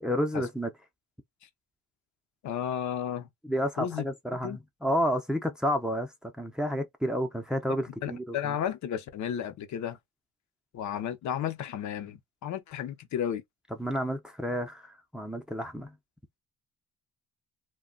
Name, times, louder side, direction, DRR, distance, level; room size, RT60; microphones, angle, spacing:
voice 1, 0.0-0.7 3.4-8.6 13.8-16.0, equal, 5° right, 0.6 m, -30 dB
voice 2, 2.4-3.3 3.8-4.0 4.4-4.6 8.0-10.0 10.7-13.4, left 9 dB, 70° left, 0.7 m, -33 dB
2.2 x 2.2 x 3.8 m
cardioid pair, 90°, 30 cm